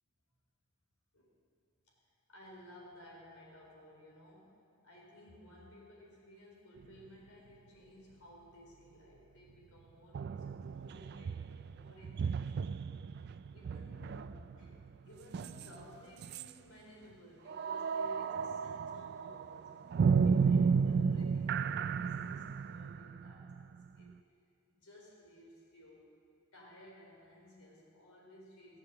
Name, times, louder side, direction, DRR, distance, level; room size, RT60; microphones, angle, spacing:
voice 1, 2.3-4.6 4.8-24.2 24.7-26.1 26.5-28.8, equal, 70° left, -2 dB, 4.2 m, -57 dB
sound 1, 6.8-6.9 10.1-15.9 16.2-16.5 17.5-24.1, right 5 dB, 45° right, 0.3 m, -33 dB
19.0 x 7.5 x 7.8 m, 2.7 s
head